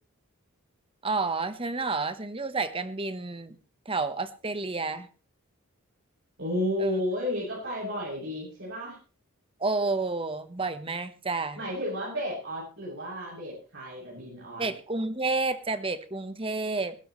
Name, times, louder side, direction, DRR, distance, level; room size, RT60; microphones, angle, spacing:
voice 1, 1.0-3.5 3.8-5.1 6.8-7.0 9.6-11.6 14.6-17.0, right 3 dB, 25° right, 11 dB, 1.2 m, -30 dB
voice 2, 6.4-9.0 11.5-14.6, left 1 dB, 60° right, -6 dB, 7.7 m, -32 dB
21.0 x 12.0 x 3.2 m, 0.36 s
head